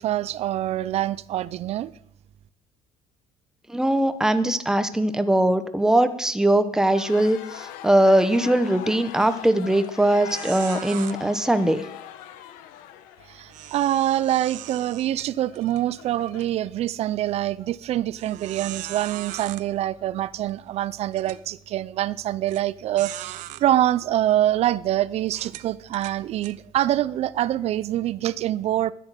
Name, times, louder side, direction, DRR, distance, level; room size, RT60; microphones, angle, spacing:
voice 1, 0.0-1.9 13.3-28.9, right 13 dB, 50° right, 0.5 m, -25 dB
voice 2, 3.7-11.8, right 1 dB, 5° right, 1.0 m, -21 dB
sound 1, 6.9-16.9, left 11 dB, 85° left, 1.3 m, -41 dB
sound 2, 9.2-9.5 9.8-9.9 10.3-11.1 13.5-15.8 16.3-16.4 17.1-17.2 18.2-19.6 20.5-20.6 21.1-21.4 22.5-22.6 23.0-23.6 24.3-24.5 25.3-26.5, right 15 dB, 65° right, 0.9 m, -39 dB
12.0 x 10.5 x 9.0 m
cardioid pair, 140°, 14 cm